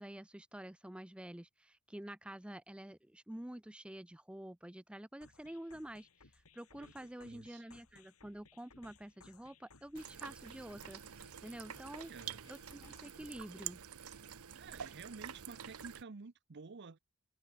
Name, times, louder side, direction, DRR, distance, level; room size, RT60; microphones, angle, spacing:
voice 1, 0.0-12.1 12.5-13.8, right 1 dB, 5° right, 0.5 m, -49 dB
sound 1, 5.2-13.2, left 4 dB, 80° left, 3.8 m, -63 dB
voice 2, 6.8-7.6 11.9-12.4 14.5-17.0, right 4 dB, 55° right, 0.7 m, -52 dB
sound 2, 10.0-16.0, right 9 dB, 80° right, 1.0 m, -48 dB
head